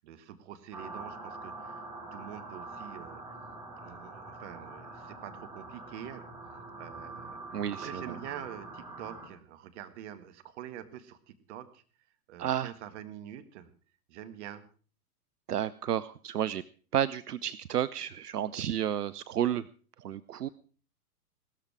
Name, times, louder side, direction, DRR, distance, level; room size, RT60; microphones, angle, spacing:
voice 1, 0.0-1.9 2.1-3.3 3.8-11.8 12.3-13.7 14.1-14.6 20.5-20.6, right 11 dB, 45° right, 10 dB, 1.8 m, -46 dB
sound 1, 0.7-9.3, right 2 dB, 5° right, 4.3 m, -44 dB
voice 2, 7.5-8.0 12.4-12.7 15.5-16.6 16.9-19.7 20.0-20.5, right 10 dB, 80° right, 16 dB, 0.7 m, -31 dB
17.0 x 13.5 x 4.8 m, 0.40 s
figure-of-eight pair, 110°, 46 cm